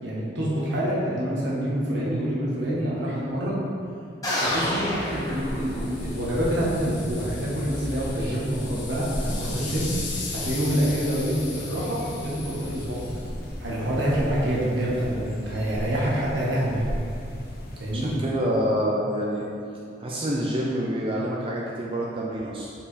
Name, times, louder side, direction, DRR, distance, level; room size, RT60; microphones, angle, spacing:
voice 1, 0.0-3.6 4.4-9.9 10.3-13.2 13.6-16.8 17.8-18.1, equal, 80° right, -6 dB, 1.2 m, -27 dB
sound 1, 4.2-6.2, left 1 dB, 20° left, 1.2 m, -28 dB
sound 2, 4.4-18.2, equal, 55° left, 0.9 m, -36 dB
sound 3, 5.0-15.3, left 3 dB, 75° left, 1.3 m, -39 dB
voice 2, 17.9-19.4 20.0-22.7, equal, 30° right, -4 dB, 0.5 m, -27 dB
5.5 x 4.8 x 4.1 m, 2.5 s
head